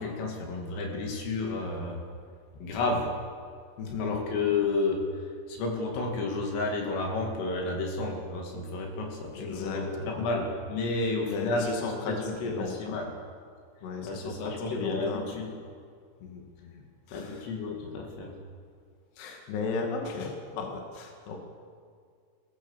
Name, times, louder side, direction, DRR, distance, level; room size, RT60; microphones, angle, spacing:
voice 1, 0.0-2.0 2.6-3.1 4.0-13.1 14.0-15.5 17.1-18.3, left 3 dB, 80° left, 1 dB, 5.0 m, -31 dB
voice 2, 3.8-4.1 9.3-10.3 11.3-13.0 13.8-15.4 16.2-17.5 17.8-18.0 19.2-21.4, left 4 dB, 60° left, 2 dB, 4.0 m, -35 dB
23.0 x 16.5 x 7.3 m, 2.1 s
omnidirectional pair, 5.9 m